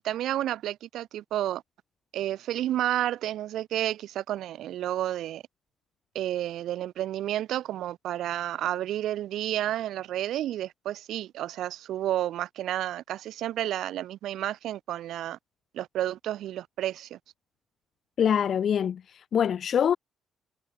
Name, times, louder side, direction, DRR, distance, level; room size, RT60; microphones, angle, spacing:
voice 1, 0.0-1.6 2.1-5.4 6.1-15.4 15.7-17.2, right 12 dB, 80° right, 5.5 m, -31 dB
voice 2, 18.2-20.0, left 8 dB, 60° left, 0.6 m, -24 dB
cardioid pair, 90°, 0 cm